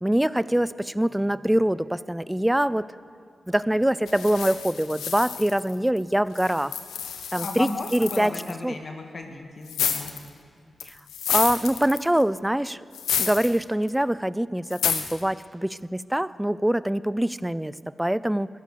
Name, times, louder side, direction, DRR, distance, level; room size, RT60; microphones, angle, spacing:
voice 1, 0.0-2.9 3.5-6.7 7.3-8.3 8.6-8.8 11.3-12.8 13.2-18.5, right 1 dB, 10° right, 18 dB, 0.4 m, -24 dB
sound 1, 4.1-6.0 6.3-8.5 9.7-10.3 10.8-12.2 12.9-13.6 13.9-14.0 14.7-15.2, left 8 dB, 90° left, 0.9 m, -29 dB
voice 2, 7.4-10.1, left 3 dB, 55° left, 4 dB, 1.7 m, -34 dB
14.5 x 11.0 x 6.7 m, 2.4 s
supercardioid pair, 40°, 0 cm